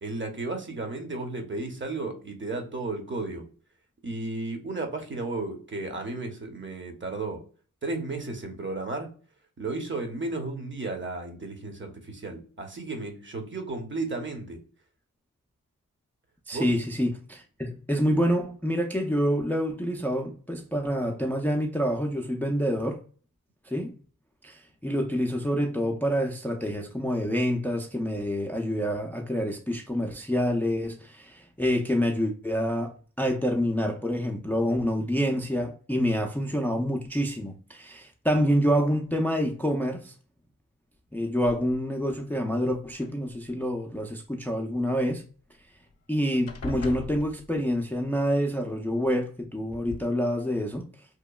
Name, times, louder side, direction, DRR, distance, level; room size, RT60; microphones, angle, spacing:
voice 1, 0.0-3.4 4.0-7.4 7.8-9.1 9.6-14.6 16.5-16.7, right 2 dB, 35° right, 0.8 m, -33 dB
voice 2, 16.5-23.0 23.6-23.9 24.4-40.1 41.1-45.2 46.1-50.9, equal, 5° left, 0.4 m, -27 dB
sound 1, 41.5-42.0 42.9-43.7 45.5-45.6 45.9-46.1 46.5-47.9 49.0-49.1 49.7-50.0, left 3 dB, 50° left, 0.6 m, -41 dB
2.9 x 2.2 x 2.2 m
cardioid pair, 40°, 34 cm